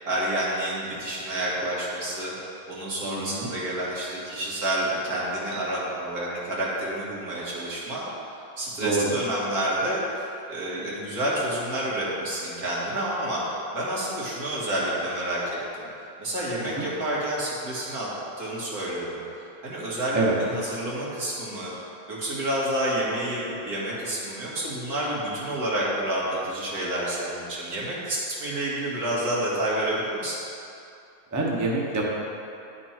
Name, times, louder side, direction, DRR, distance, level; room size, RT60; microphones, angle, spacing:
voice 1, 0.1-8.0 8.6-10.0 10.5-15.9 16.2-18.1 18.4-19.2 19.6-20.2 20.5-21.7 22.1-30.4, right 1 dB, 85° right, -6 dB, 2.1 m, -29 dB
voice 2, 3.0-3.5 8.8-9.1 16.6-16.9 20.1-20.4 31.3-32.0, right 2 dB, 15° right, -3 dB, 0.7 m, -26 dB
10.5 x 4.4 x 4.4 m, 2.7 s
omnidirectional pair, 1.6 m